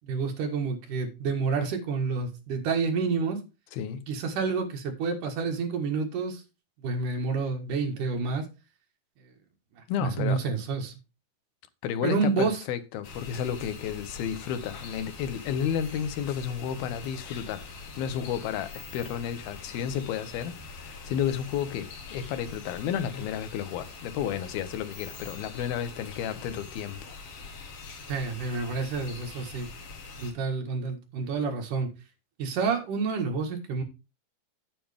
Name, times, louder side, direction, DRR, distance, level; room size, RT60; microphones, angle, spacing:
voice 1, 0.0-3.4 4.1-6.4 6.8-8.5 10.0-10.9 12.0-12.6 28.1-29.7 30.2-31.9 32.4-33.8, right 4 dB, 65° right, 3.2 m, -29 dB
voice 2, 3.7-4.0 9.9-10.4 11.8-17.7 18.0-27.2, left 9 dB, 90° left, 2.8 m, -32 dB
sound 1, 13.0-30.3, left 4 dB, 60° left, 3.8 m, -44 dB
9.2 x 8.8 x 3.5 m
omnidirectional pair, 4.2 m